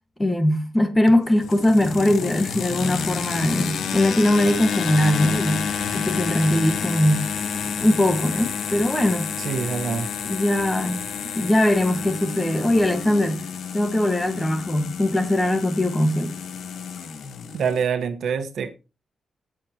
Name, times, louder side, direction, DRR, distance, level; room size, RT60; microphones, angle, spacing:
voice 1, 0.2-5.7 5.9-7.3 7.8-9.3 10.3-11.0 11.3-13.4 13.7-16.3, left 1 dB, 10° left, 1.7 m, -21 dB
sound 1, 1.1-17.8, left 7 dB, 85° left, 1.4 m, -30 dB
voice 2, 9.4-10.1 17.5-18.7, right 6 dB, 70° right, 1.4 m, -25 dB
16.5 x 7.7 x 3.0 m
wide cardioid pair, 175°, 0 cm